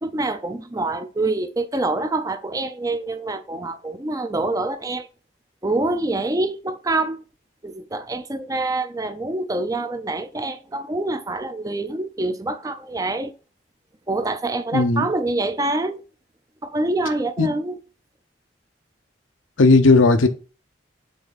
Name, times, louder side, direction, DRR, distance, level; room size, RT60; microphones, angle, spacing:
voice 1, 0.0-5.1 5.6-7.2 7.6-13.3 14.1-16.0 16.6-17.8, right 2 dB, 20° right, 0.5 m, -26 dB
voice 2, 14.7-15.1 17.4-17.5 19.6-20.3, left 3 dB, 90° left, 0.8 m, -15 dB
7.2 x 3.4 x 4.0 m
head